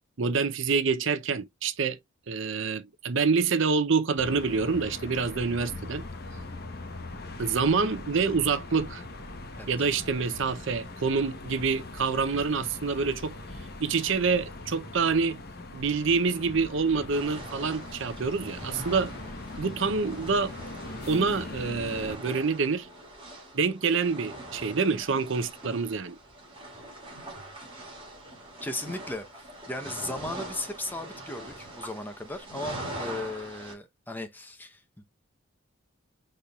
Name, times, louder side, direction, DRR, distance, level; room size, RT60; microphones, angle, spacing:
voice 1, 0.2-2.0 2.3-6.0 7.4-9.0 9.7-13.4 13.8-15.4 15.7-19.1 19.6-20.5 21.1-22.9 23.5-26.2, right 5 dB, 60° right, 0.6 m, -27 dB
sound 1, 4.2-22.2, left 2 dB, 45° left, 1.0 m, -41 dB
sound 2, 17.1-33.7, right 1 dB, 25° right, 2.3 m, -43 dB
voice 2, 28.6-29.3 29.7-35.0, left 2 dB, 10° left, 0.7 m, -36 dB
5.0 x 4.4 x 2.3 m
head